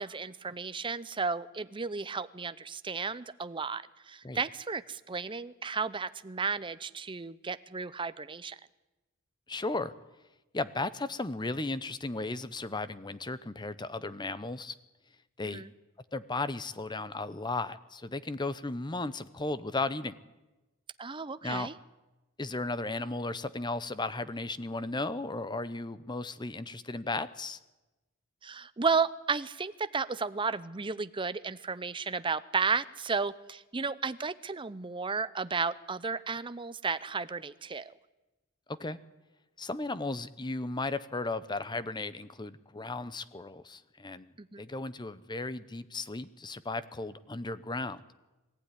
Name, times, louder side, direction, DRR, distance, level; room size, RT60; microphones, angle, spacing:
voice 1, 0.0-8.6 15.4-15.7 21.0-21.7 28.4-37.9 44.4-44.6, right 4 dB, 25° right, 14 dB, 0.7 m, -33 dB
voice 2, 9.5-9.9 10.5-14.7 15.4-15.6 16.1-20.2 21.4-21.7 22.4-27.6 38.7-39.0 39.6-44.3 44.6-48.0, left 2 dB, 20° left, 15 dB, 0.8 m, -35 dB
23.0 x 15.0 x 9.9 m, 1.1 s
head